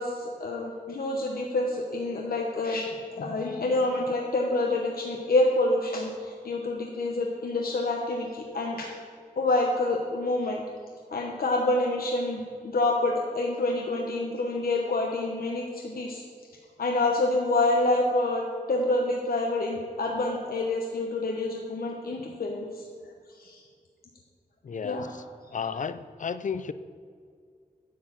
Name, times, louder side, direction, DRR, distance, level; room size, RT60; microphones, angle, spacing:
voice 1, 0.0-2.9 3.2-8.9 9.4-10.6 11.1-16.2 16.8-22.9 23.4-23.6 24.8-25.1, left 2 dB, 75° left, 0 dB, 0.9 m, -27 dB
voice 2, 24.6-25.2 25.5-26.7, left 6 dB, 55° left, 13 dB, 0.5 m, -33 dB
10.0 x 4.7 x 7.3 m, 2.1 s
wide cardioid pair, 80°, 15 cm